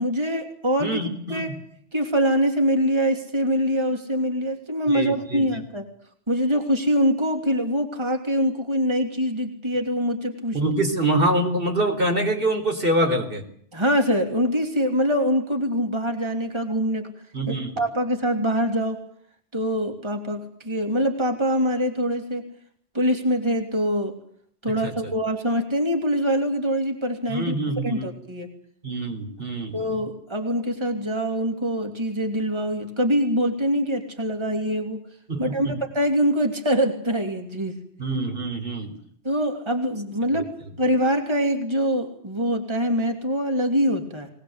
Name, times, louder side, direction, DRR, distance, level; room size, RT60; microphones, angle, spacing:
voice 1, 0.0-1.0 1.3-1.5 1.9-5.9 6.3-10.6 13.7-17.1 17.8-19.0 19.5-22.5 22.9-24.1 24.6-27.5 27.8-28.5 29.7-35.0 35.4-37.8 39.2-40.5 40.8-44.3, equal, 25° right, 4 dB, 2.9 m, -24 dB
voice 2, 0.8-1.6 4.9-5.5 10.5-13.4 17.3-17.7 24.8-25.1 27.3-28.0 28.8-29.9 35.3-35.8 38.0-38.9 40.3-40.4, right 1 dB, 55° right, 5 dB, 4.5 m, -25 dB
22.0 x 20.5 x 8.1 m, 0.64 s
omnidirectional pair, 1.1 m